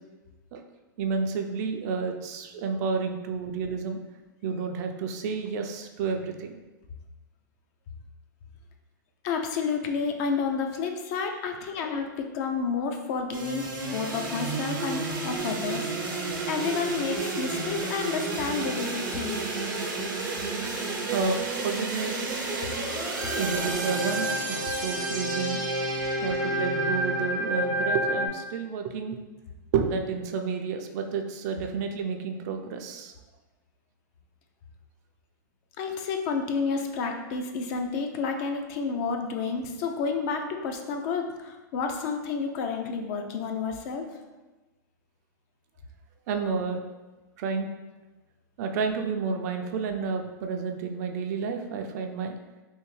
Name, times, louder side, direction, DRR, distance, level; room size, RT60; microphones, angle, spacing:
voice 1, 1.0-4.0 4.4-6.6 21.1-22.4 23.3-25.6 26.2-29.2 29.7-33.1 46.3-46.8 47.4-47.7 48.6-52.4, right 5 dB, 55° right, 5 dB, 0.4 m, -30 dB
voice 2, 9.2-19.4 35.8-44.0, left 5 dB, 50° left, 4 dB, 0.5 m, -30 dB
sound 1, 13.3-28.3, right 2 dB, 85° right, 0.8 m, -30 dB
3.5 x 2.6 x 3.1 m, 1.1 s
hypercardioid pair, 125°, 11 cm